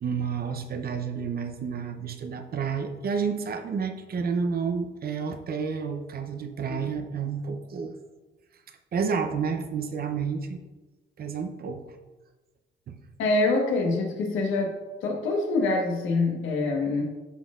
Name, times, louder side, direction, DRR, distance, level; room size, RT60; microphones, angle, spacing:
voice 1, 0.0-7.9 8.7-10.6 11.2-12.0 12.9-13.0, right 6 dB, 50° right, 7 dB, 0.7 m, -30 dB
voice 2, 13.2-14.7 15.0-17.0, left 3 dB, 80° left, 1 dB, 1.3 m, -25 dB
11.5 x 4.1 x 2.4 m, 1.2 s
cardioid pair, 90°, 20 cm